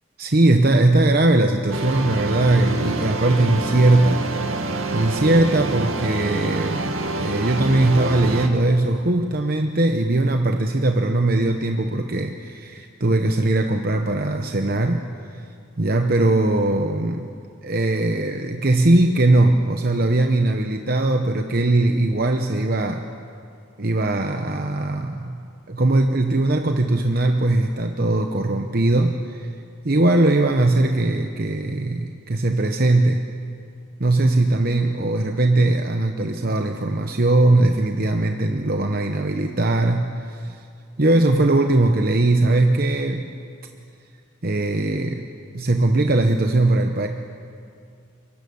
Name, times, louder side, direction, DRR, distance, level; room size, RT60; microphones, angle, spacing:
voice 1, 0.2-4.6 4.9-15.0 15.8-17.3 17.6-23.1 23.8-29.5 29.8-33.2 34.0-40.6 41.0-43.3 44.4-45.3 45.5-47.1, right 2 dB, 45° right, 5 dB, 1.0 m, -20 dB
sound 1, 1.7-8.5, right 2 dB, 70° right, 2.1 m, -27 dB
24.0 x 24.0 x 7.0 m, 2.4 s
head